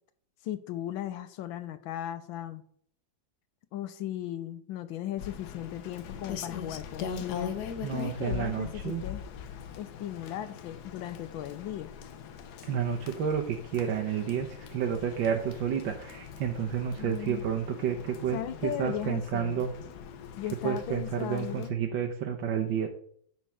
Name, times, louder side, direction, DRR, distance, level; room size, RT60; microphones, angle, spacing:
voice 1, 0.4-2.6 3.7-7.5 7.9-9.2 9.7-11.9 17.0-17.4 18.3-19.6 20.4-21.7, left 11 dB, 85° left, 10 dB, 1.5 m, -37 dB
Rain, 5.2-21.7, left 7 dB, 65° left, 1.2 m, -41 dB
voice 2, 7.8-9.0 12.6-19.7 20.6-22.9, right 8 dB, 75° right, 2 dB, 1.5 m, -30 dB
10.5 x 4.5 x 6.2 m, 0.62 s
omnidirectional pair, 2.1 m